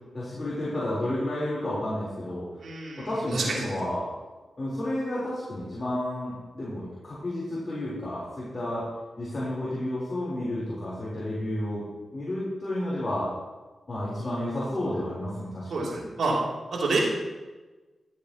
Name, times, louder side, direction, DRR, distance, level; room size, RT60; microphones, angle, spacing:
voice 1, 0.1-2.6 3.0-4.1 4.6-8.8 9.2-11.8 12.1-13.3 13.9-16.0, left 1 dB, 40° left, -8 dB, 3.9 m, -31 dB
voice 2, 2.6-3.6 15.7-16.4 16.7-17.1, right 3 dB, 80° right, -4 dB, 3.0 m, -28 dB
15.0 x 8.3 x 3.0 m, 1.2 s
cardioid pair, 60°, 0 cm